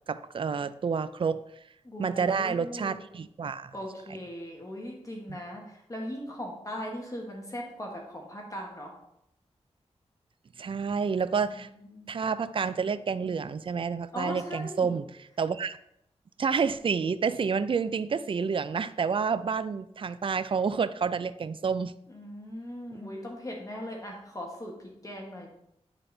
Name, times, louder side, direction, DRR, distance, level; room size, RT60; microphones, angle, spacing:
voice 1, 0.1-1.4 2.0-3.7 5.3-5.4 10.6-11.7 12.1-15.0 15.4-15.8 16.4-21.9, right 5 dB, 50° right, 14 dB, 0.4 m, -29 dB
voice 2, 1.8-3.0 3.7-8.9 11.4-12.1 14.1-15.0 22.1-24.7 25.0-25.5, equal, 30° left, -1 dB, 1.4 m, -39 dB
9.8 x 4.1 x 3.4 m, 0.78 s
wide cardioid pair, 75°, 12 cm